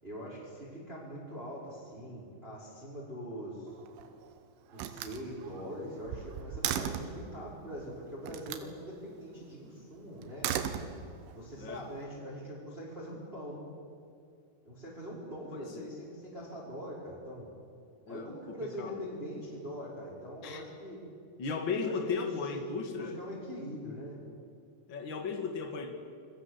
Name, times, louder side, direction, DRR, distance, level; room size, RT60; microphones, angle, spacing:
voice 1, 0.0-3.8 4.7-10.5 11.3-13.7 14.6-17.5 18.1-21.0 21.8-22.6 22.9-24.2, equal, 10° right, -5 dB, 5.5 m, -43 dB
Slam, 3.7-4.3 4.7-7.2 8.3-8.7 10.2-11.4, right 9 dB, 90° right, 3.9 m, -36 dB
voice 2, 15.5-15.9 18.1-19.0 20.4-20.6 21.4-23.2 24.9-26.0, left 5 dB, 80° left, 5 dB, 1.0 m, -36 dB
29.0 x 22.0 x 8.2 m, 2.4 s
omnidirectional pair, 5.5 m